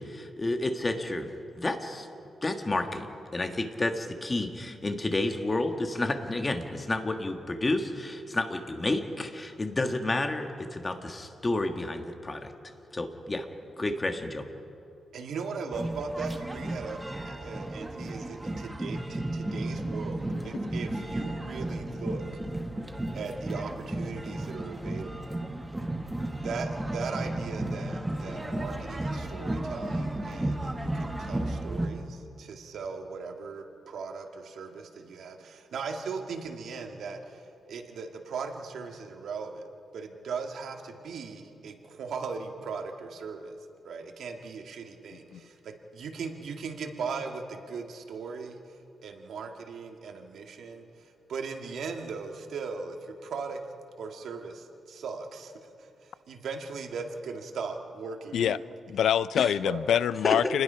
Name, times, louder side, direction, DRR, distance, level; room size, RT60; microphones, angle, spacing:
voice 1, 0.0-2.1 2.4-12.5 12.9-13.5 13.8-14.5 59.4-59.5 60.2-60.5, left 2 dB, 20° left, 5 dB, 1.6 m, -30 dB
voice 2, 15.1-17.0 17.2-22.2 23.1-25.1 26.4-39.6 39.9-43.6 43.8-53.6 54.0-58.6 59.6-59.8, right 5 dB, 75° right, 3 dB, 2.1 m, -38 dB
sound 1, 15.7-31.9, right 1 dB, 10° right, 1.6 m, -33 dB
voice 3, 58.9-60.6, left 9 dB, 85° left, 17 dB, 0.4 m, -25 dB
28.5 x 20.0 x 5.7 m, 2.6 s
wide cardioid pair, 145°, 0 cm